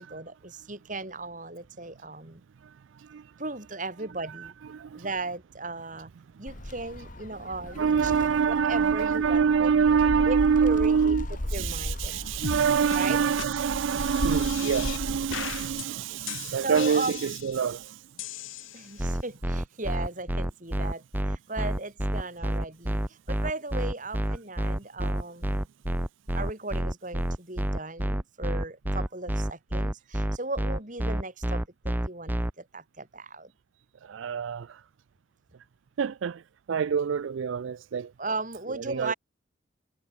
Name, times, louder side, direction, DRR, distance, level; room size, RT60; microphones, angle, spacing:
voice 1, 0.0-2.4 3.4-4.5 4.9-6.1 6.4-8.1 8.5-9.7 10.3-11.2 11.5-12.2 13.0-13.2 16.6-17.2 18.7-25.7 26.3-33.5 38.2-39.1, right 2 dB, 40° right, 4.7 m, -36 dB
voice 2, 2.6-3.3 4.3-5.1 7.8-18.1 25.0-25.2 34.0-34.8 36.0-36.4 36.7-38.1 38.7-39.1, right 6 dB, 75° right, 0.4 m, -26 dB
Gull seagull, 6.5-15.8, left 1 dB, 40° left, 2.0 m, -36 dB
sound 1, 12.4-12.6 12.9-13.0 13.4-13.5 13.9-15.0 15.3-15.8 16.3-17.7 18.2-19.1, left 8 dB, 80° left, 0.8 m, -38 dB
sound 2, 19.0-32.5, right 1 dB, 10° right, 0.6 m, -28 dB
head